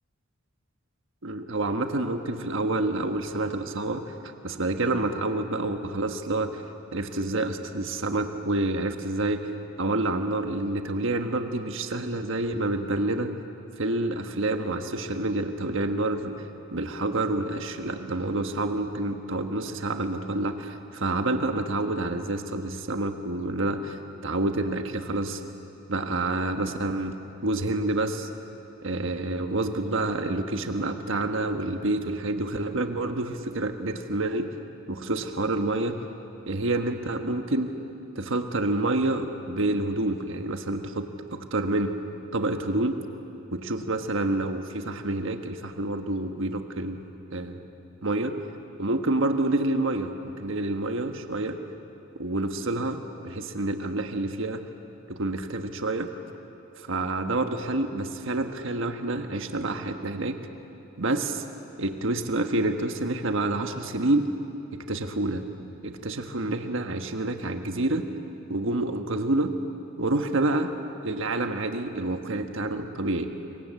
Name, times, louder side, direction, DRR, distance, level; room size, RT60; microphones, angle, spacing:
voice 1, 1.2-6.6 6.9-9.4 9.8-13.3 13.8-16.3 16.7-25.4 25.9-27.2 27.4-28.3 28.8-34.5 34.9-36.0 36.5-37.7 38.1-41.9 42.3-43.0 43.5-47.0 47.3-47.6 48.0-48.3 48.8-51.6 52.2-54.6 55.1-56.1 56.8-60.4 61.0-61.4 61.8-64.3 64.7-65.4 65.8-68.1 68.5-69.5 70.0-70.7 71.0-73.3, right 2 dB, 65° right, 6 dB, 1.4 m, -28 dB
26.0 x 22.5 x 8.3 m, 2.9 s
head